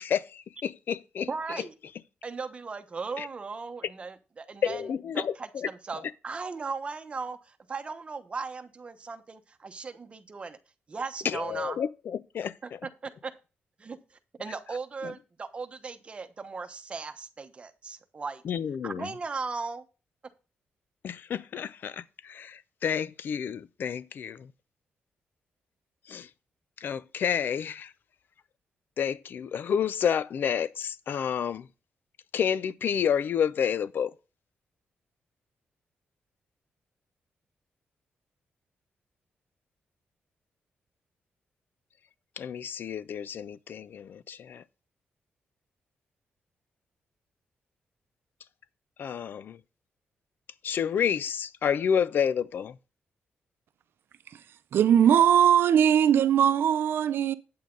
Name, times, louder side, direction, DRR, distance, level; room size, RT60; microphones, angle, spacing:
voice 1, 0.0-1.6 3.2-3.3 4.6-5.7 11.2-12.8 15.0-15.1 18.4-19.1 21.0-24.5 26.1-26.3 26.8-27.9 29.0-31.7 32.3-34.1 42.4-44.6 49.0-49.6 50.6-52.8, left 8 dB, 60° left, 0.5 m, -30 dB
voice 2, 1.3-1.7 2.2-4.8 5.1-10.6 10.9-11.8 12.6-12.7 13.0-13.3 13.8-18.4 18.8-19.8, right 4 dB, 30° right, 1.1 m, -37 dB
voice 3, 54.7-57.3, right 9 dB, 70° right, 0.6 m, -20 dB
8.7 x 8.4 x 3.9 m
wide cardioid pair, 145°, 4 cm